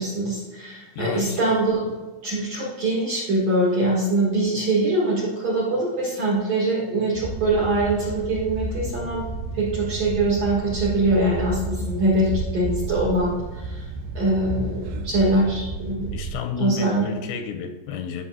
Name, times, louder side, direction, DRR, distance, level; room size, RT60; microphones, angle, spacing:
voice 1, 0.0-1.8 2.2-9.3 9.5-13.9 14.1-16.1 16.6-17.1, right 2 dB, 55° right, -6 dB, 2.1 m, -23 dB
voice 2, 1.0-1.4 15.3-15.6 16.1-18.3, left 7 dB, 85° left, 5 dB, 2.7 m, -31 dB
sound 1, 7.1-16.3, right 3 dB, 90° right, 2.3 m, -32 dB
11.0 x 5.8 x 2.7 m, 1.2 s
omnidirectional pair, 5.1 m